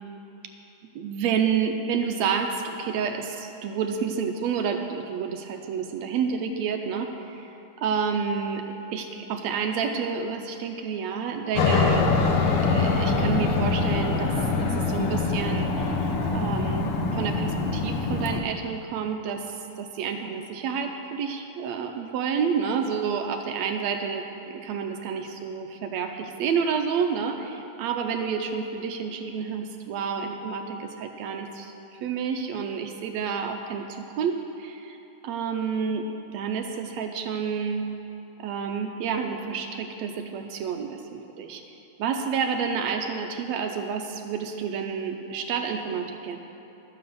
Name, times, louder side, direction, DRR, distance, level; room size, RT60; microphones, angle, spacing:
voice 1, 1.0-8.7 8.9-12.3 12.7-14.3 14.6-19.5 19.8-31.7 32.0-35.0 35.2-36.1 36.3-37.9 38.4-41.6 42.0-46.4, right 6 dB, 75° right, 4 dB, 1.8 m, -29 dB
Aircraft, 11.6-18.4, left 4 dB, 65° left, 1.6 m, -24 dB
12.5 x 9.5 x 6.8 m, 2.9 s
omnidirectional pair, 3.4 m